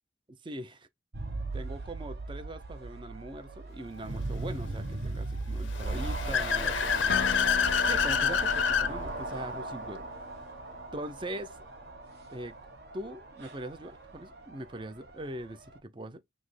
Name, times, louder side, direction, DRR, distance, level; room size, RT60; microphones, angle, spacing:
sound 1, 1.1-15.8, right 2 dB, 55° right, 1.0 m, -38 dB
voice 1, 1.5-7.4 7.8-10.1 10.9-11.6 12.3-12.5 12.9-16.2, right 1 dB, 25° right, 0.5 m, -41 dB
Car / Accelerating revving vroom, 5.7-8.9, left 7 dB, 80° left, 0.7 m, -27 dB
sound 2, 7.1-10.8, left 6 dB, 50° left, 0.3 m, -40 dB
6.2 x 2.1 x 3.1 m
head